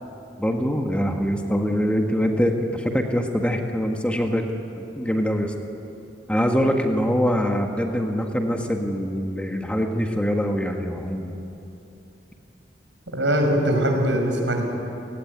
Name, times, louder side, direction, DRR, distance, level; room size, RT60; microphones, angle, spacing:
voice 1, 0.4-4.5 4.8-5.5 6.3-11.3, equal, 5° left, 3 dB, 1.7 m, -24 dB
voice 2, 13.1-14.7, equal, 85° right, 3 dB, 5.6 m, -21 dB
29.0 x 18.0 x 9.6 m, 2.9 s
head